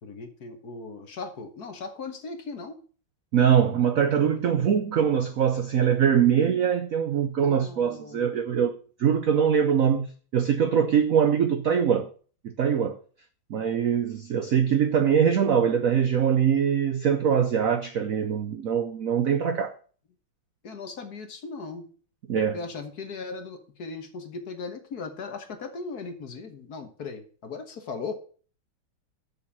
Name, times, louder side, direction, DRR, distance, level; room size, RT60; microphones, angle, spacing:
voice 1, 0.0-2.8 7.4-8.4 20.6-21.9 22.5-28.1, left 4 dB, 50° left, 1.6 m, -38 dB
voice 2, 3.3-8.7 9.0-12.1 12.4-13.0 13.5-19.7 22.3-22.6, right 8 dB, 70° right, 0.8 m, -23 dB
7.0 x 6.6 x 7.2 m
omnidirectional pair, 2.3 m